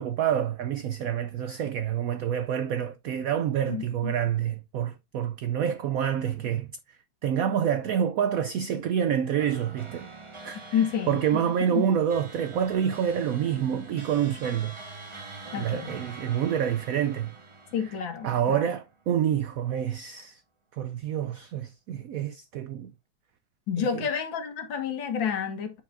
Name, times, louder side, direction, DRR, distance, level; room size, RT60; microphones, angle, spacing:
voice 1, 0.0-6.7 7.2-10.1 10.4-10.8 11.1-14.8 15.6-17.4 18.2-20.4 20.7-22.9 23.8-24.1, right 9 dB, 80° right, 0.7 m, -27 dB
voice 2, 3.7-4.1 10.7-11.9 15.5-16.0 17.7-18.7 23.7-25.8, left 7 dB, 80° left, 2.0 m, -30 dB
sound 1, 9.4-19.0, right 3 dB, 20° right, 0.8 m, -45 dB
8.5 x 4.6 x 2.5 m
omnidirectional pair, 2.1 m